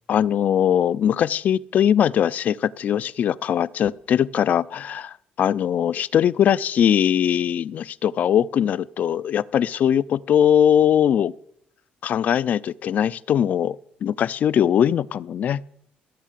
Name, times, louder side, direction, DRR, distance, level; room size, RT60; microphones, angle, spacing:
voice 1, 0.1-11.3 12.0-15.6, left 9 dB, 50° left, 0.4 m, -21 dB
16.0 x 7.4 x 7.5 m
cardioid pair, 125°, 3 cm